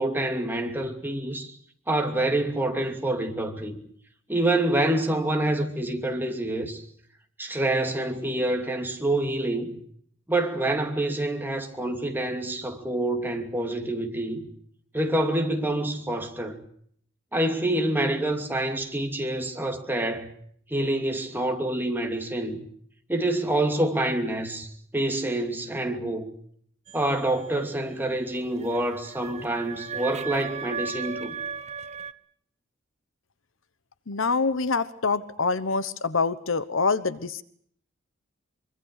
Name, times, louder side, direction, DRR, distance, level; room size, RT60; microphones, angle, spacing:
voice 1, 0.0-1.5 1.9-3.8 4.3-6.8 7.4-9.8 10.3-14.5 14.9-16.6 17.3-20.3 20.7-22.6 23.1-26.3 26.9-31.3, right 1 dB, 10° right, 2.7 m, -27 dB
sound 1, 26.9-32.1, right 6 dB, 35° right, 1.0 m, -37 dB
voice 2, 34.1-37.4, left 4 dB, 70° left, 1.1 m, -25 dB
24.5 x 24.0 x 6.6 m
head